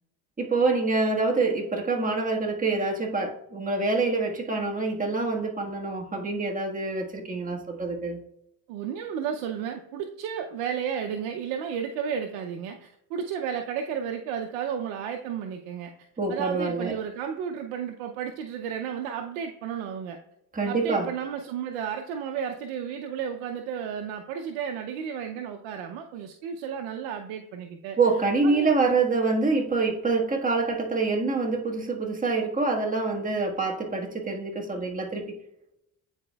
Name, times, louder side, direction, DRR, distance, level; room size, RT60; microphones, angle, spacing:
voice 1, 0.4-8.2 16.2-16.9 20.5-21.1 28.0-35.4, right 3 dB, 20° right, 1.5 m, -26 dB
voice 2, 8.7-15.9 16.3-20.2 20.7-28.0 28.4-28.8, right 7 dB, 90° right, 0.7 m, -33 dB
9.8 x 4.3 x 2.3 m
supercardioid pair, 80°, 44 cm